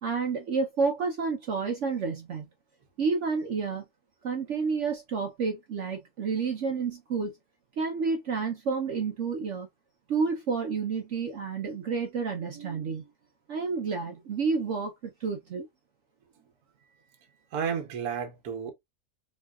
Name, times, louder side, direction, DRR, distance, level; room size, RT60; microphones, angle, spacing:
voice 1, 0.0-2.5 3.0-3.8 4.2-7.4 7.8-9.7 10.1-13.0 13.5-15.7, right 5 dB, 60° right, 0.9 m, -30 dB
voice 2, 12.5-12.9 17.5-18.7, right 7 dB, 75° right, 1.3 m, -33 dB
3.8 x 3.1 x 2.3 m
omnidirectional pair, 1.7 m